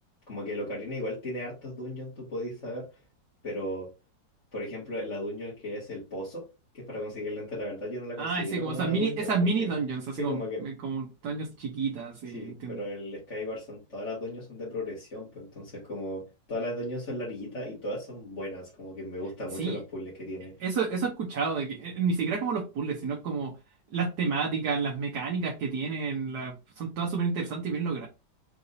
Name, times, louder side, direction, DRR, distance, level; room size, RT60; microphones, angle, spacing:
voice 1, 0.3-2.9 3.4-3.9 4.5-6.5 6.7-9.3 9.6-9.7 10.1-10.6 12.3-16.2 16.5-20.5, left 1 dB, 40° left, -7 dB, 2.2 m, -36 dB
voice 2, 8.2-12.8 19.6-19.8 20.6-23.5 23.9-28.1, right 4 dB, 65° right, -1 dB, 1.5 m, -30 dB
4.8 x 3.5 x 2.7 m, 0.28 s
omnidirectional pair, 1.9 m